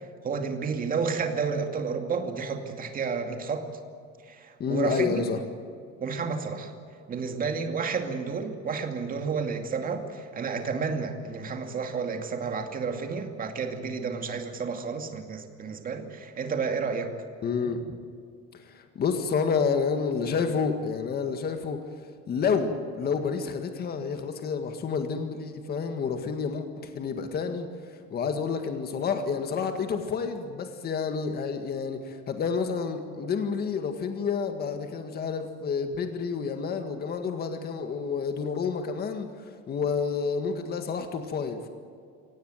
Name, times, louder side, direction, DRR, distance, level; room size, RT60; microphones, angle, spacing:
voice 1, 0.2-3.7 4.3-5.2 6.0-6.7 7.1-17.1, right 5 dB, 30° right, 5 dB, 2.4 m, -31 dB
voice 2, 4.6-5.4 17.4-18.0 18.5-21.8 22.3-27.7 28.1-39.3 39.7-41.7, left 5 dB, 35° left, 6 dB, 1.8 m, -29 dB
24.5 x 18.0 x 9.1 m, 2.3 s
cardioid pair, 165°, 29 cm